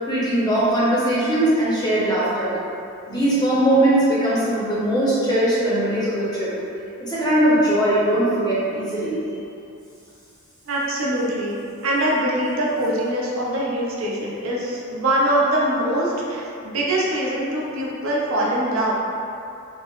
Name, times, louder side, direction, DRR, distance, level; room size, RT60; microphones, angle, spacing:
voice 1, 0.1-2.6 3.1-6.5 7.0-9.2, right 1 dB, 20° left, -9 dB, 0.6 m, -20 dB
voice 2, 10.7-11.6 11.8-18.9, right 1 dB, 70° right, -4 dB, 0.5 m, -23 dB
4.5 x 2.0 x 2.3 m, 2.6 s
head